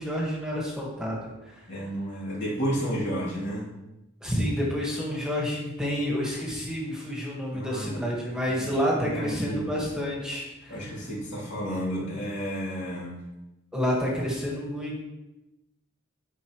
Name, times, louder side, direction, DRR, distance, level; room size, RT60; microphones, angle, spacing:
voice 1, 0.0-1.7 4.2-11.0 13.7-15.0, equal, 5° right, -4 dB, 1.8 m, -29 dB
voice 2, 1.7-3.7 7.5-8.1 8.4-9.7 10.7-13.2, equal, 55° left, -8 dB, 3.2 m, -32 dB
11.5 x 5.6 x 3.2 m, 0.97 s
head